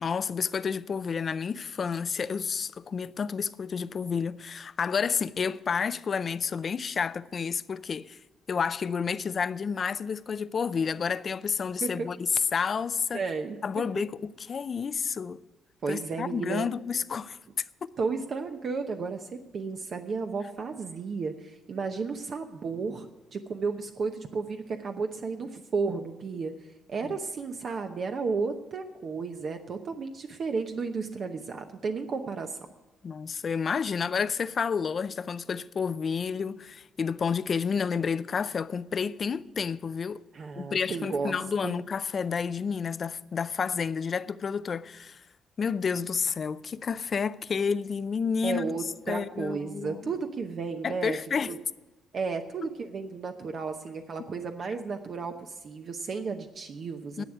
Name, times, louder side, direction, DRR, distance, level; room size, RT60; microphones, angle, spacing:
voice 1, 0.0-8.2 8.5-13.2 13.6-15.4 15.9-17.9 27.0-27.1 33.0-40.2 40.6-45.2 45.6-48.7 49.1-50.1 50.8-51.6 57.2-57.3, left 6 dB, 45° left, 0.5 m, -30 dB
voice 2, 13.1-13.6 15.8-16.6 18.0-26.5 26.9-32.6 40.3-41.4 41.6-41.7 48.4-51.2 51.5-51.6 52.1-57.2, right 4 dB, 55° right, 0.9 m, -33 dB
11.0 x 7.9 x 9.9 m
cardioid pair, 90°, 0 cm